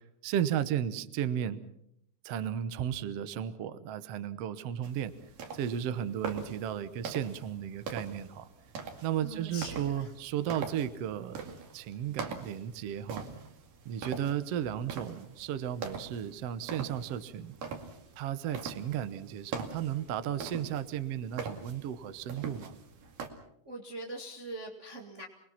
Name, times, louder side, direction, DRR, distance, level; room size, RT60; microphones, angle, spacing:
voice 1, 0.0-1.6 2.2-5.1 5.5-8.5 9.0-13.3 13.8-17.5 18.2-22.7, right 10 dB, 65° right, 12 dB, 1.7 m, -34 dB
sound 1, 4.8-23.3, right 5 dB, 80° right, 4.0 m, -43 dB
voice 2, 9.2-10.1 23.7-25.3, right 1 dB, 25° right, 1 dB, 2.0 m, -42 dB
28.5 x 21.0 x 5.9 m, 0.74 s
omnidirectional pair, 3.8 m